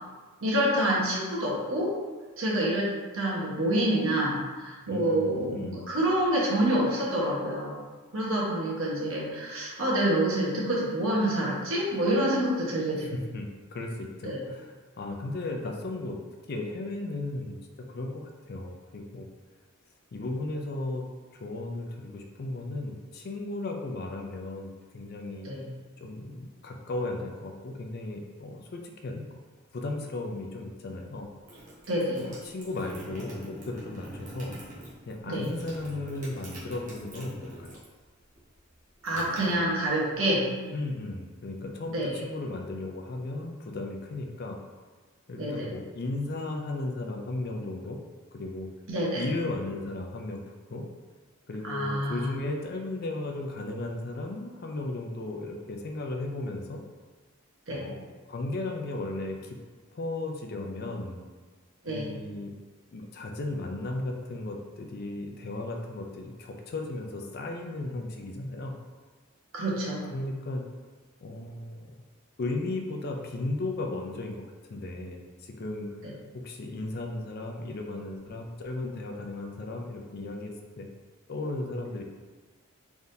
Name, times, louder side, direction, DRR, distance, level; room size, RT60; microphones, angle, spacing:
voice 1, 0.4-1.9 2.4-2.9 3.1-7.8 8.1-13.1 14.2-14.4 25.4-25.6 31.9-32.3 35.3-35.4 39.0-40.4 41.9-42.1 45.4-45.6 48.9-49.2 51.6-52.3 57.7-57.8 61.8-62.1 69.5-70.0, right 1 dB, 65° right, -5 dB, 1.1 m, -27 dB
voice 2, 4.9-5.8 13.0-16.2 16.5-17.6 17.9-19.3 20.1-21.0 21.3-25.5 26.0-29.4 29.7-31.3 32.2-34.5 35.1-37.8 40.7-44.6 45.3-48.0 48.3-48.7 49.1-50.9 51.5-56.8 57.7-59.6 59.9-61.2 61.9-62.5 62.9-68.7 70.1-70.6 71.2-72.0 72.4-74.4 74.7-80.9 81.3-82.0, left 2 dB, 45° left, 2 dB, 0.4 m, -35 dB
sound 1, 31.4-38.0 38.3-40.1, right 1 dB, 35° right, 1.1 m, -44 dB
3.9 x 3.5 x 2.7 m, 1.3 s
head